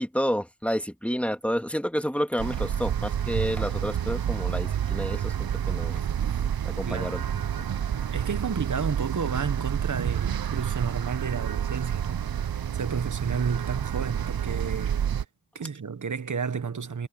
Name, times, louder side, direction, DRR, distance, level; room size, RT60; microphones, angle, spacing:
voice 1, 0.0-6.0 6.6-7.4, equal, 5° left, 2.4 m, -30 dB
sound 1, 2.4-15.2, right 9 dB, 85° right, 0.7 m, -29 dB
voice 2, 6.8-7.2 8.1-12.3 12.7-15.0 15.5-17.1, right 6 dB, 60° right, 1.1 m, -31 dB
wide cardioid pair, 50°, 35 cm